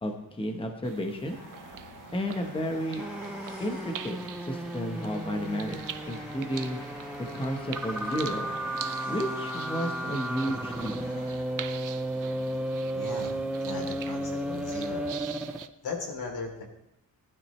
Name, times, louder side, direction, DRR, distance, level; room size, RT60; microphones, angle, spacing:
voice 1, 0.0-1.4 2.1-3.0 3.6-5.8 6.1-6.8 7.3-8.5 9.1-11.0, equal, 15° left, 4 dB, 1.1 m, -32 dB
sound 1, 0.8-15.7, right 10 dB, 60° right, 0.6 m, -45 dB
Train, 1.2-11.7, left 1 dB, 45° left, 5.1 m, -47 dB
sound 2, 3.0-15.7, right 1 dB, 5° right, 0.5 m, -34 dB
voice 2, 12.9-13.3 13.6-15.2 15.8-16.6, left 3 dB, 85° left, 1 dB, 3.3 m, -37 dB
19.5 x 12.0 x 3.2 m, 0.82 s
wide cardioid pair, 175°, 36 cm